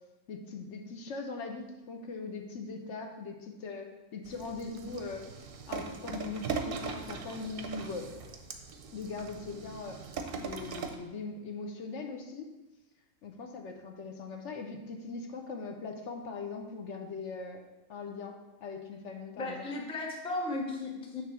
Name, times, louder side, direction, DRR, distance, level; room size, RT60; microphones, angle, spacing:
voice 1, 0.3-5.2 5.7-8.1 8.9-10.0 10.4-12.5 13.2-17.6 17.9-19.7, left 4 dB, 65° left, 3 dB, 1.0 m, -40 dB
sound 1, 4.2-11.0, right 5 dB, 55° right, 0.7 m, -40 dB
voice 2, 19.4-21.2, left 2 dB, 5° left, 0 dB, 0.5 m, -35 dB
6.4 x 3.3 x 6.0 m, 1.0 s
omnidirectional pair, 1.4 m